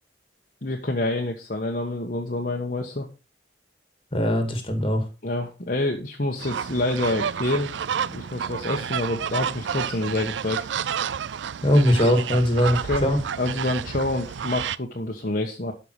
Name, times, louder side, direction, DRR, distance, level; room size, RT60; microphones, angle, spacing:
voice 1, 0.6-3.1 5.2-7.8 8.1-10.7 12.7-13.1 13.4-15.7, left 2 dB, 50° left, 1 dB, 1.2 m, -27 dB
voice 2, 4.1-5.1 11.6-13.2, equal, 30° left, 6 dB, 2.3 m, -20 dB
sound 1, 6.4-14.8, right 7 dB, 80° right, 0.4 m, -30 dB
12.5 x 5.9 x 4.8 m, 0.30 s
head